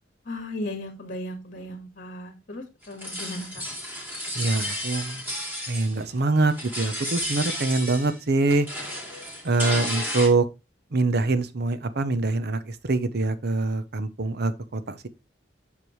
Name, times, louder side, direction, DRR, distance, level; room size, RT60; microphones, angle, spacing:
voice 1, 0.3-3.6, left 1 dB, 45° left, 1.8 m, -36 dB
sound 1, 2.8-6.2 6.5-8.2 8.5-10.3, equal, 10° right, 2.8 m, -32 dB
voice 2, 4.3-5.2 5.7-8.7 9.4-10.5 10.9-15.1, right 3 dB, 60° right, 0.8 m, -24 dB
7.9 x 5.3 x 3.1 m
head